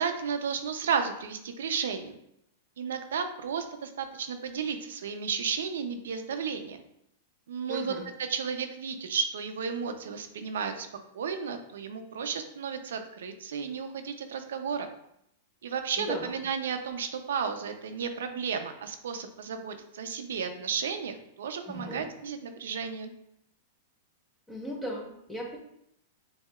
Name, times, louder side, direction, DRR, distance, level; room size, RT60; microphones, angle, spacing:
voice 1, 0.0-2.2 2.8-6.8 7.5-7.9 8.2-10.9 11.1-14.9 15.6-23.1, right 6 dB, 90° right, 7 dB, 0.5 m, -33 dB
voice 2, 7.7-8.1 16.0-16.4 21.6-22.1 24.5-25.6, equal, 5° left, -1 dB, 0.7 m, -37 dB
7.2 x 2.7 x 2.3 m, 0.77 s
supercardioid pair, 160°, 0 cm